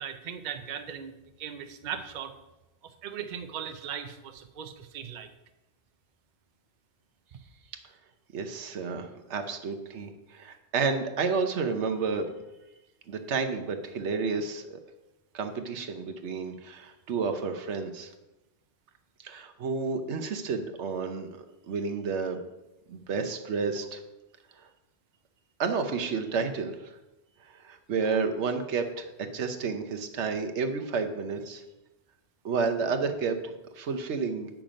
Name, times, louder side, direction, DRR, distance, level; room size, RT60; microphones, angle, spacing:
voice 1, 0.0-2.4 2.8-5.3, right 8 dB, 50° right, 8 dB, 0.7 m, -38 dB
voice 2, 8.3-12.3 13.1-14.8 15.3-18.1 19.2-22.4 22.9-24.0 25.6-26.7 27.6-31.6 32.4-34.5, right 5 dB, 85° right, 6 dB, 1.1 m, -31 dB
8.8 x 6.1 x 5.1 m, 0.99 s
omnidirectional pair, 1.1 m